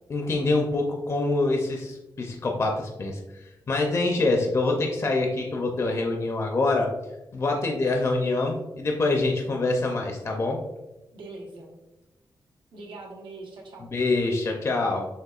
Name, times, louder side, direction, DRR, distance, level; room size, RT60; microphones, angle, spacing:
voice 1, 0.1-3.2 3.7-6.9 7.3-10.6 13.9-15.1, left 2 dB, 35° left, 2 dB, 0.4 m, -25 dB
voice 2, 11.1-11.7 12.7-13.9, right 2 dB, 90° right, -1 dB, 1.0 m, -42 dB
6.3 x 2.6 x 2.4 m, 0.99 s
wide cardioid pair, 155°, 8 cm